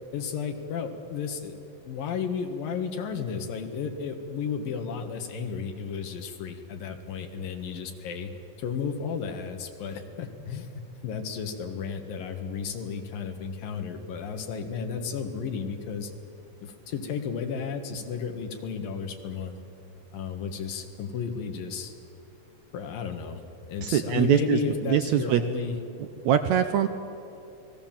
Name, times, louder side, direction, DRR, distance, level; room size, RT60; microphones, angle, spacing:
voice 1, 0.1-1.5 1.8-8.3 8.6-16.1 16.6-19.5 20.1-21.9 22.7-23.4 23.7-25.8, left 6 dB, 80° left, 5 dB, 3.4 m, -33 dB
voice 2, 23.8-25.4 26.2-26.9, right 10 dB, 75° right, 8 dB, 1.8 m, -23 dB
29.0 x 20.5 x 7.5 m, 2.7 s
omnidirectional pair, 4.0 m